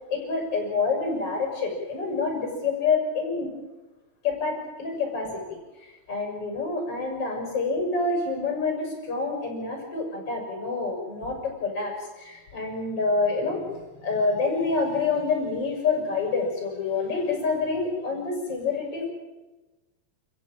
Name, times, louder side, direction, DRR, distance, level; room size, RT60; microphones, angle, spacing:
voice 1, 0.1-3.5 4.2-5.4 6.1-13.6 14.0-19.1, left 4 dB, 25° left, 2 dB, 6.8 m, -27 dB
28.0 x 15.0 x 8.9 m, 1.1 s
omnidirectional pair, 5.9 m